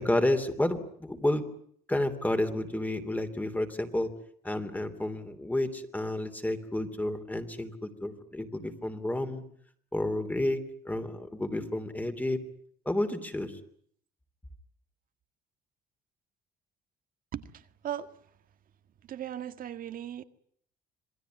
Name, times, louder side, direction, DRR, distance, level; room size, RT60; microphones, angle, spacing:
voice 1, 0.0-1.4 1.9-4.1 4.4-9.4 9.9-12.4 12.8-13.6, left 1 dB, 10° left, 3.0 m, -30 dB
voice 2, 17.3-18.1 19.1-20.2, right 10 dB, 55° right, 1.8 m, -38 dB
27.5 x 20.0 x 9.2 m
cardioid pair, 110°, 17 cm